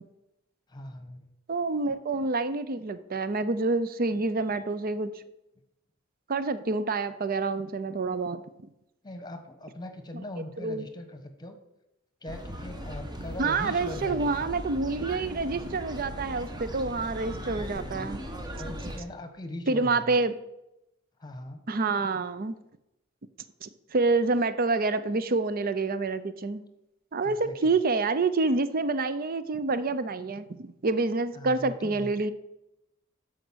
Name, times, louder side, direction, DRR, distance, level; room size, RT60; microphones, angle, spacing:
voice 1, 0.7-1.3 9.0-11.6 12.2-14.5 17.5-18.1 18.5-20.2 21.2-21.6 27.2-27.7 31.3-32.1, left 1 dB, 20° left, 7 dB, 1.2 m, -41 dB
voice 2, 1.5-5.1 6.3-8.4 10.6-10.9 13.4-18.2 19.7-20.3 21.7-22.6 23.6-26.6 27.1-32.3, right 3 dB, 45° right, 12 dB, 0.6 m, -27 dB
sound 1, 12.3-19.0, equal, 20° right, 1.1 m, -38 dB
13.0 x 5.2 x 6.3 m, 0.89 s
head